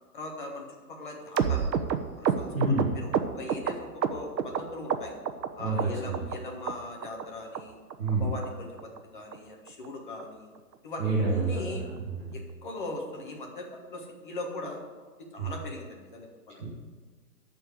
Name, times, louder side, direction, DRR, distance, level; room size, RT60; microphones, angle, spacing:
voice 1, 0.1-1.7 2.2-2.5 2.9-5.1 5.6-7.8 8.1-10.5 10.8-11.8 12.3-14.8 15.3-16.6, left 2 dB, 30° left, 1 dB, 1.4 m, -40 dB
sound 1, 1.4-4.6 4.9-5.5 5.8-6.4 6.7-6.8 7.0-7.2 7.5-7.6 7.9-8.1 8.4-8.5 8.8-9.0 9.3-9.4 9.7-9.9 10.2-10.3 10.6-10.7 11.1-11.2, right 7 dB, 80° right, 1.0 m, -29 dB
voice 2, 2.5-2.9 5.6-6.3 8.0-8.3 11.0-12.3 15.4-15.5 16.6-16.8, right 3 dB, 25° right, -11 dB, 2.2 m, -28 dB
12.0 x 4.5 x 7.9 m, 1.4 s
hypercardioid pair, 175°, 49 cm